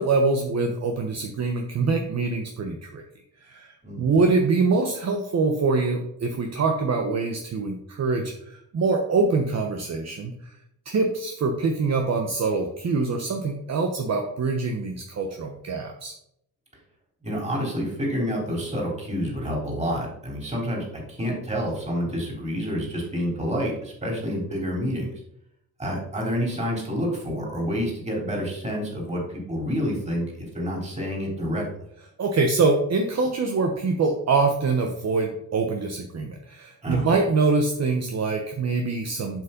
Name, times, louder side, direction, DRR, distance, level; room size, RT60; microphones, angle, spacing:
voice 1, 0.0-3.0 3.4-10.3 10.8-16.1 32.2-39.4, right 3 dB, 45° right, 3 dB, 1.1 m, -24 dB
voice 2, 17.2-25.1 25.8-31.6 36.8-37.1, equal, 20° right, -1 dB, 3.8 m, -28 dB
7.5 x 5.8 x 5.3 m, 0.75 s
cardioid pair, 110°, 35 cm